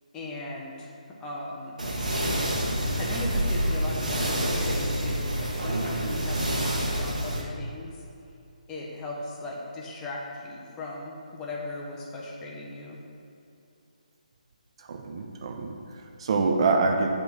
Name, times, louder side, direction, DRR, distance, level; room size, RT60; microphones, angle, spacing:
voice 1, 0.1-0.9 1.2-1.8 3.0-8.0 8.7-13.0, left 2 dB, 15° left, -3 dB, 1.0 m, -38 dB
sound 1, 1.8-7.4, right 1 dB, 65° right, 1.5 m, -27 dB
voice 2, 14.8-17.1, right 4 dB, 40° right, 2 dB, 0.7 m, -26 dB
8.8 x 3.8 x 6.0 m, 2.6 s
figure-of-eight pair, 145°, 4 cm